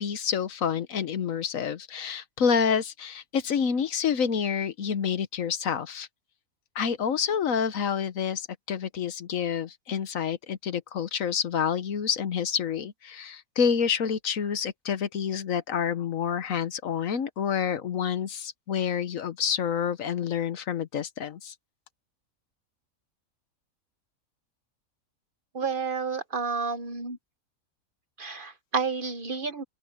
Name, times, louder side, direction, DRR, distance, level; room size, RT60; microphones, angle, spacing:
voice 1, 0.0-6.1 6.7-21.5, left 7 dB, 70° left, 1.4 m, -28 dB
voice 2, 25.5-27.2 28.2-29.6, right 5 dB, 40° right, 1.0 m, -30 dB
open air
omnidirectional pair, 1.5 m